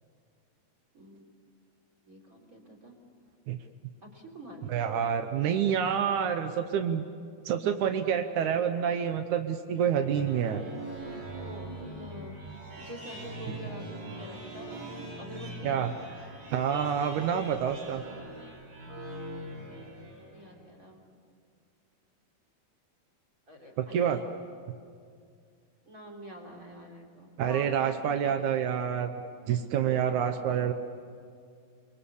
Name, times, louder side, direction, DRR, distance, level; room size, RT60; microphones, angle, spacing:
voice 1, 0.9-1.3 2.0-2.9 4.0-4.7 11.0-11.1 11.4-15.8 19.5-19.8 20.3-21.0 23.5-24.2 25.8-28.5 29.5-30.6, equal, 20° right, 2 dB, 3.4 m, -47 dB
voice 2, 4.7-7.0 7.4-10.6 13.5-13.6 15.6-15.9 16.5-18.0 23.8-24.2 27.4-29.1 29.5-30.7, right 8 dB, 85° right, 7 dB, 1.7 m, -28 dB
sound 1, 9.7-20.6, right 1 dB, 60° right, 6.3 m, -42 dB
30.0 x 22.5 x 7.1 m, 2.2 s
omnidirectional pair, 4.6 m